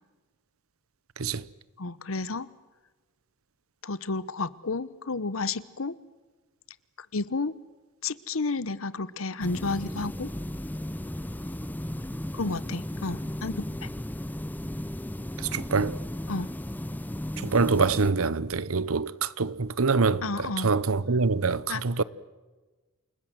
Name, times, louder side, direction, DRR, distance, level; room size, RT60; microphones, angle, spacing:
voice 1, 1.2-1.5 15.4-16.0 17.4-22.0, right 4 dB, 85° right, 1.0 m, -25 dB
voice 2, 1.8-2.5 3.8-5.9 7.1-7.5 8.0-10.3 12.3-13.9 16.3-16.5 20.2-20.7 21.7-21.8, left 3 dB, 75° left, 1.0 m, -31 dB
sound 1, 9.4-18.1, left 1 dB, 10° left, 0.7 m, -35 dB
29.0 x 20.0 x 7.6 m
head